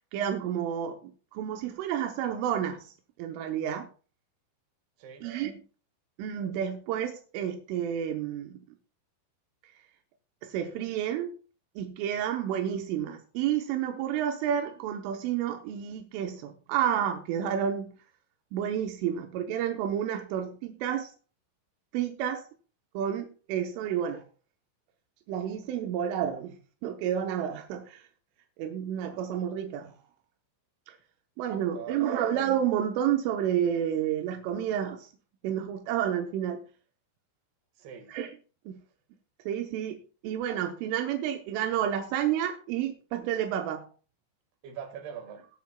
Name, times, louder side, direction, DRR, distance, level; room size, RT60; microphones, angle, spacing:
voice 1, 0.1-2.9 3.2-3.9 5.2-5.6 6.2-8.6 10.4-11.4 11.8-18.0 18.5-21.1 21.9-22.5 23.0-24.3 25.3-26.6 26.8-28.0 28.6-29.9 30.9-31.0 31.4-35.1 35.4-36.6 38.1-38.3 38.7-38.8 39.5-40.0 40.2-43.9, right 9 dB, 85° right, 3.4 m, -30 dB
voice 2, 5.0-5.4 31.7-32.3 37.8-38.2 44.6-45.5, right 8 dB, 60° right, 3.5 m, -43 dB
19.0 x 9.6 x 2.3 m
omnidirectional pair, 5.6 m